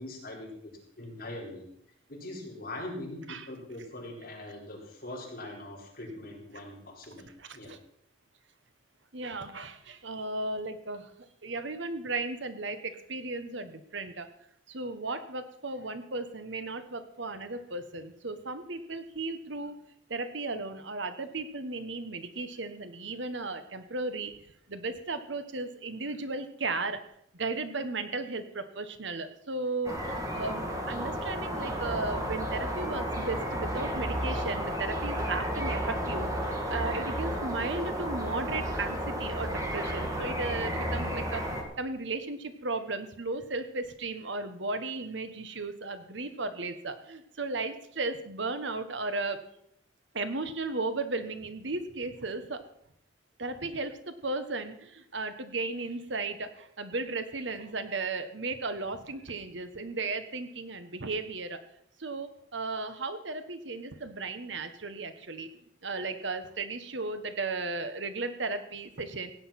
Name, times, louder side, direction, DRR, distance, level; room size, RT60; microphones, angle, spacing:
voice 1, 0.0-1.7 2.1-7.3 7.5-7.7, left 1 dB, 50° left, -2 dB, 4.6 m, -42 dB
voice 2, 7.4-7.8 9.1-11.1 11.4-14.3 14.7-19.8 20.1-24.3 24.7-27.0 27.3-49.4 50.1-52.6 53.4-61.6 62.0-65.5 65.8-69.3, right 3 dB, 70° right, 10 dB, 1.3 m, -35 dB
sound 1, 29.8-41.6, equal, 15° right, 2.5 m, -32 dB
16.5 x 9.5 x 5.9 m, 0.72 s
head